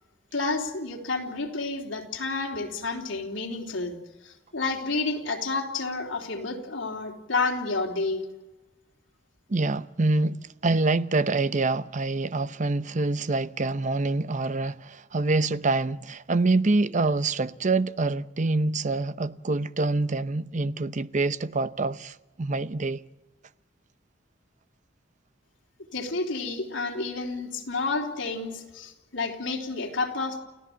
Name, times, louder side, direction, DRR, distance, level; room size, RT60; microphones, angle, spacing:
voice 1, 0.3-4.0 4.2-8.3 25.9-30.4, left 3 dB, 80° left, 3.6 m, -30 dB
voice 2, 9.5-23.0, right 3 dB, 40° right, 0.7 m, -26 dB
29.5 x 15.5 x 7.6 m
head